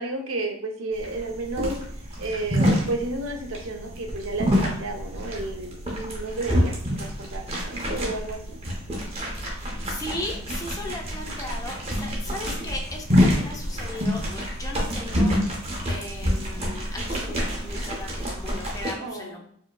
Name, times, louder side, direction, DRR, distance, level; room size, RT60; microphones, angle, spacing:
voice 1, 0.0-1.8 2.2-8.6 19.0-19.4, right 2 dB, 65° right, 3 dB, 0.6 m, -32 dB
sound 1, 1.0-18.9, equal, 25° right, 0.8 m, -27 dB
sound 2, 2.6-17.0, equal, 45° left, 1.3 m, -47 dB
voice 2, 9.4-19.4, left 1 dB, 15° left, 1 dB, 0.6 m, -37 dB
4.6 x 2.9 x 2.3 m, 0.65 s
head